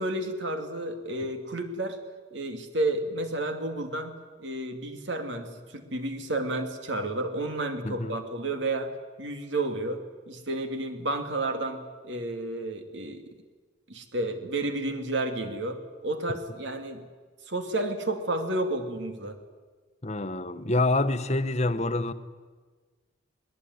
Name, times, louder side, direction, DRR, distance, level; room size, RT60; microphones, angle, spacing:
voice 1, 0.0-2.0 2.3-8.9 9.2-10.0 10.3-13.2 13.9-17.0 17.5-19.4, right 2 dB, 65° right, 2.6 m, -31 dB
voice 2, 7.8-8.2 20.0-22.1, left 2 dB, 35° left, 1.1 m, -26 dB
22.0 x 20.5 x 9.6 m
head